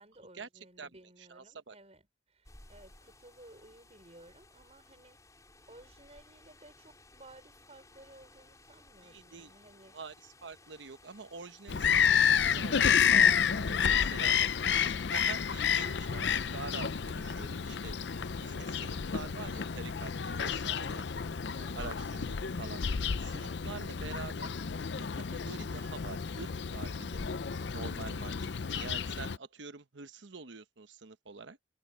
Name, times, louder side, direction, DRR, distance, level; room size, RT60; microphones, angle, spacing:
voice 1, 0.0-5.2 5.7-10.0 13.7-15.0 18.5-18.8 21.5-21.9 23.4-23.8, right 1 dB, 35° right, 5.6 m, -57 dB
voice 2, 1.2-1.8 9.0-9.5 9.9-14.4 15.1-18.0 18.4-21.0 21.8-22.8 23.2-24.5 24.9-27.3 27.7-31.6, right 4 dB, 80° right, 1.1 m, -46 dB
sound 1, 2.4-21.9, left 2 dB, 20° left, 4.9 m, -59 dB
Bird vocalization bird call bird song, 11.7-29.4, left 7 dB, 70° left, 0.6 m, -30 dB
head